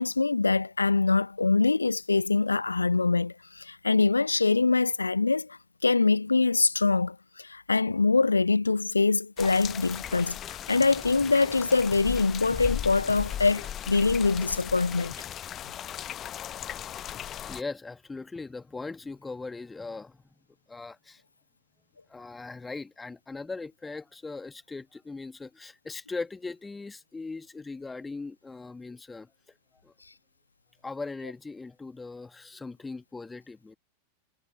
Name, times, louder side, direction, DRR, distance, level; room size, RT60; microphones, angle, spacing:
voice 1, 0.0-15.1, left 3 dB, 80° left, 0.4 m, -24 dB
sound 1, 9.4-17.6, left 10 dB, 30° left, 1.1 m, -37 dB
voice 2, 17.4-20.2 20.7-21.2 22.1-29.3 29.8-29.9 30.8-33.8, left 3 dB, 10° left, 1.7 m, -39 dB
figure-of-eight pair, 90°, 0 cm